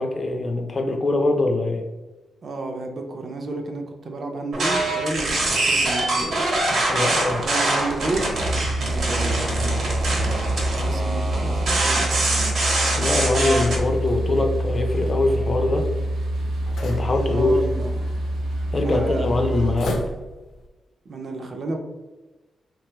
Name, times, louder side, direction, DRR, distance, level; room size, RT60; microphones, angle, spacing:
voice 1, 0.0-1.8 6.9-7.4 13.0-15.9 16.8-17.5 18.7-20.0, left 2 dB, 30° left, 4 dB, 0.4 m, -23 dB
voice 2, 2.4-6.7 7.4-8.3 8.8-10.3 10.7-12.1 17.3-18.1 18.8-19.3 21.1-21.8, right 2 dB, 45° right, 3 dB, 0.4 m, -31 dB
sound 1, 4.5-13.8, right 2 dB, 60° right, 0.9 m, -24 dB
sound 2, 8.3-19.8, right 1 dB, 85° right, 0.6 m, -26 dB
sound 3, 13.3-20.7, left 2 dB, 80° left, 0.6 m, -39 dB
3.3 x 2.2 x 2.9 m, 1.2 s
wide cardioid pair, 155°, 0 cm